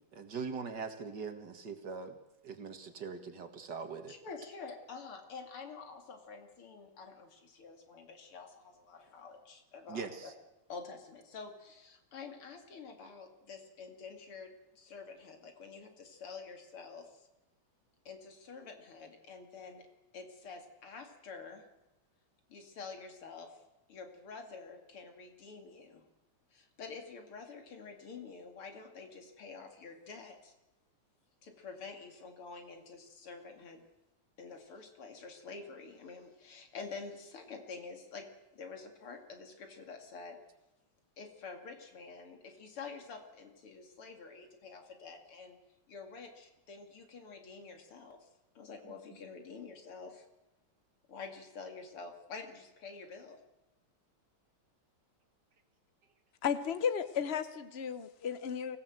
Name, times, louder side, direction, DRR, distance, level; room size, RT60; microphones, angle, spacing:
voice 1, 0.1-2.2 2.4-4.1 9.9-10.3, right 5 dB, 55° right, 7 dB, 2.2 m, -41 dB
voice 2, 4.1-10.1 10.7-17.3 18.0-19.9 20.1-21.6 22.5-23.6 23.9-26.0 26.5-30.5 31.4-33.8 34.4-38.3 38.5-40.4 41.2-45.6 45.9-48.3 48.5-50.2 51.1-53.4, left 4 dB, 85° left, 4 dB, 3.3 m, -48 dB
voice 3, 56.4-58.8, left 7 dB, 65° left, 11 dB, 0.6 m, -34 dB
23.5 x 16.5 x 7.9 m, 0.94 s
omnidirectional pair, 2.4 m